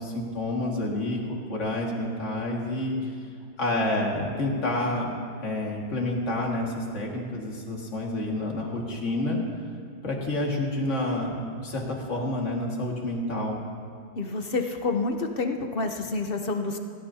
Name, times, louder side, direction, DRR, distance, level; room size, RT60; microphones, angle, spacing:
voice 1, 0.0-3.0 3.6-5.1 5.4-9.4 10.0-13.6, left 1 dB, 40° left, -1 dB, 2.2 m, -29 dB
voice 2, 14.1-16.8, left 3 dB, 60° left, 4 dB, 0.6 m, -28 dB
20.5 x 17.0 x 2.8 m, 2.2 s
omnidirectional pair, 2.1 m